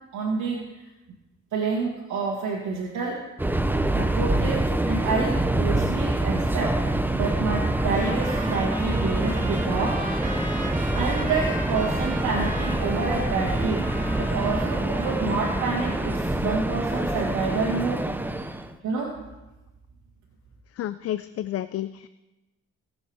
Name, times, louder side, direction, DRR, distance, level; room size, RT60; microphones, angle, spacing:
voice 1, 0.1-0.8 1.5-3.2 3.9-10.0 10.9-13.9 14.2-18.1 18.8-19.1, right 4 dB, 80° right, -3 dB, 1.9 m, -28 dB
Subway metro underground, 3.4-18.7, right 1 dB, 5° right, 0.7 m, -26 dB
Trumpet, 7.6-16.3, right 2 dB, 25° right, 1.7 m, -38 dB
voice 2, 20.8-22.1, left 12 dB, 55° left, 13 dB, 0.4 m, -30 dB
18.5 x 7.1 x 3.5 m, 1.1 s
cardioid pair, 90°, 30 cm